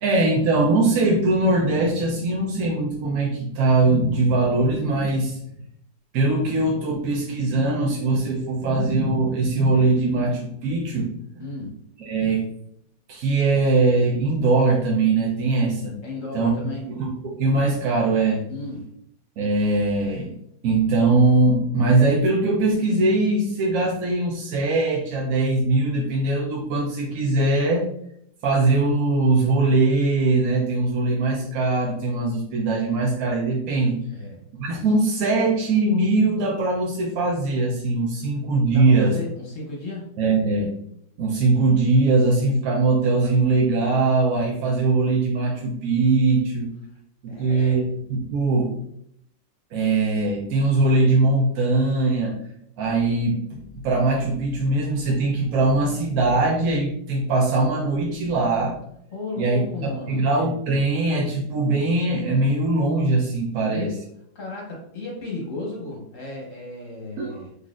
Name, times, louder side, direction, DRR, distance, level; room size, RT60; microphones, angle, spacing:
voice 1, 0.0-5.4 6.1-11.1 12.0-12.4 13.1-16.0 16.3-16.5 16.9-18.4 19.4-20.3 20.6-27.9 28.4-34.0 34.6-39.2 40.2-40.8 41.2-46.7 47.2-48.8 49.7-52.4 52.8-58.8 59.4-63.9 67.2-67.4, right 3 dB, 65° right, -2 dB, 0.9 m, -21 dB
voice 2, 11.4-11.7 16.0-16.8 18.5-18.9 34.1-34.4 38.7-40.1 47.3-47.8 59.1-60.2 63.6-64.0 64.3-67.5, left 2 dB, 50° left, -2 dB, 1.1 m, -34 dB
3.9 x 3.2 x 2.4 m, 0.71 s
omnidirectional pair, 2.0 m